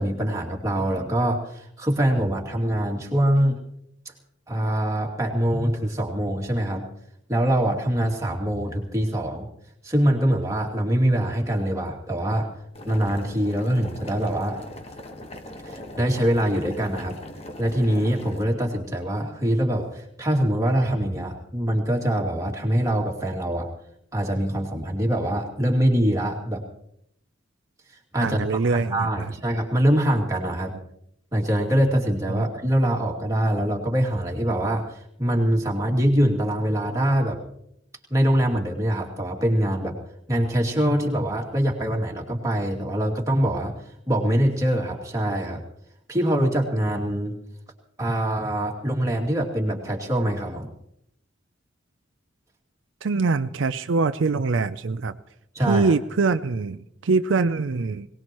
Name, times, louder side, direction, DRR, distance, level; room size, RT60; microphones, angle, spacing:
voice 1, 0.0-3.6 4.5-6.9 7.3-9.5 9.8-12.5 12.9-14.6 15.6-17.2 17.6-23.7 24.1-26.6 28.1-30.7 31.3-37.4 38.1-40.0 40.3-43.7 44.1-45.6 46.1-47.4 48.0-50.7 55.5-55.9, right 1 dB, 15° right, -1 dB, 2.5 m, -24 dB
Boiling, 12.7-18.4, left 1 dB, 30° left, 1.4 m, -40 dB
voice 2, 28.2-29.3 32.3-32.5 53.0-55.2 55.7-58.1, right 4 dB, 80° right, 11 dB, 0.5 m, -23 dB
22.0 x 19.0 x 3.1 m, 0.75 s
head